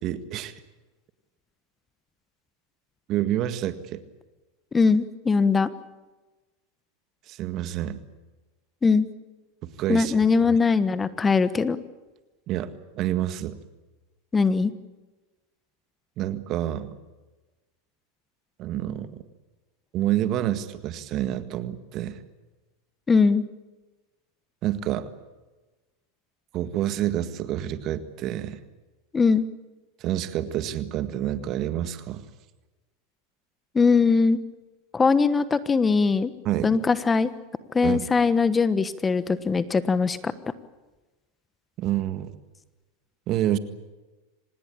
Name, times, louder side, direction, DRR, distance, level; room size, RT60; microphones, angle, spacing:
voice 1, 0.0-0.5 3.1-4.0 7.3-8.0 9.6-10.2 12.5-12.7 13.0-13.6 16.2-17.0 18.6-19.2 19.9-22.2 24.6-25.1 26.5-28.6 30.0-32.2 36.5-36.8 37.8-38.0 41.8-42.3 43.3-43.6, right 12 dB, 45° right, 11 dB, 1.8 m, -28 dB
voice 2, 4.7-5.7 8.8-9.1 9.9-11.8 14.3-14.7 23.1-23.4 29.1-29.4 33.7-34.4 34.9-36.3 36.6-37.3 37.7-40.3, left 4 dB, 20° left, 14 dB, 1.2 m, -21 dB
26.0 x 20.0 x 8.7 m, 1.2 s
hypercardioid pair, 95°, 0 cm